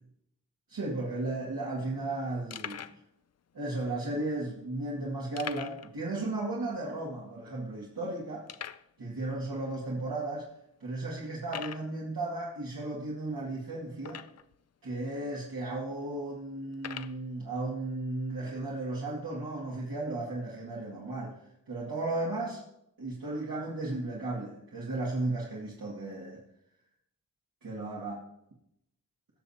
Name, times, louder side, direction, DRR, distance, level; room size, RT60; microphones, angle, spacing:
voice 1, 0.7-2.8 3.5-8.5 9.0-10.5 10.8-14.2 14.8-22.6 23.0-26.4 27.6-28.2, right 2 dB, 65° right, -5 dB, 2.1 m, -35 dB
sound 1, 1.0-1.1 1.3-1.5 2.0-2.1 2.5-3.0 3.8-3.9 5.4-5.9 6.2-6.3 6.8-6.9 7.5-7.6 8.5-8.9 9.7-9.8 10.4-10.5 11.4-11.9 14.0-14.6 15.3-15.4 16.7-17.2, left 8 dB, 45° left, 0.5 m, -42 dB
17.5 x 6.6 x 2.8 m, 0.80 s
wide cardioid pair, 85°, 37 cm